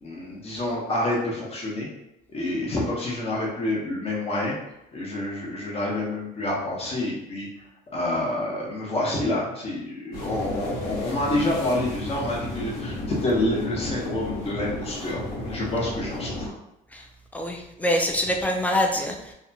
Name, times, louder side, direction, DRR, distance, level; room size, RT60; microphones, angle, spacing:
voice 1, 0.0-1.9 2.3-4.5 4.9-7.5 7.9-16.5, left 1 dB, 35° left, -4 dB, 0.9 m, -28 dB
sound 1, 10.1-16.5, left 1 dB, 60° left, 0.9 m, -33 dB
voice 2, 17.3-19.3, equal, 10° left, 2 dB, 0.4 m, -25 dB
2.7 x 2.3 x 2.7 m, 0.86 s
cardioid pair, 110°, 17 cm